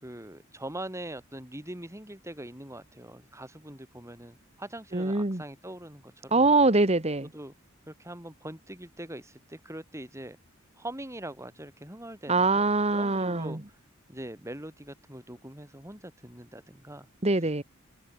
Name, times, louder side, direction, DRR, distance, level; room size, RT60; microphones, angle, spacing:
voice 1, 0.0-6.5 7.2-7.5 7.9-10.4 10.8-12.6 12.9-13.6 14.1-17.1, right 1 dB, 15° right, 6.0 m, -42 dB
voice 2, 4.9-5.4 6.3-7.3 12.3-13.6 17.2-17.6, right 3 dB, 30° right, 1.8 m, -23 dB
head